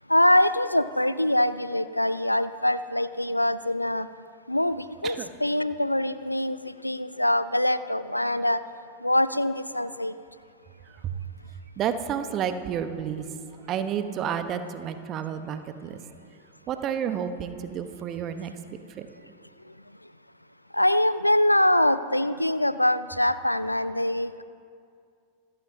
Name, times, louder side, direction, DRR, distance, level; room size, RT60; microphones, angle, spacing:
voice 1, 0.1-4.1 4.5-8.6 9.0-10.1 20.7-24.4, left 1 dB, 85° left, 15 dB, 0.4 m, -24 dB
voice 2, 10.9-11.2 11.8-13.3 13.7-16.0 16.7-19.1, right 8 dB, 35° right, 9 dB, 1.1 m, -31 dB
26.5 x 14.5 x 2.8 m, 2.3 s
figure-of-eight pair, 90°, 0 cm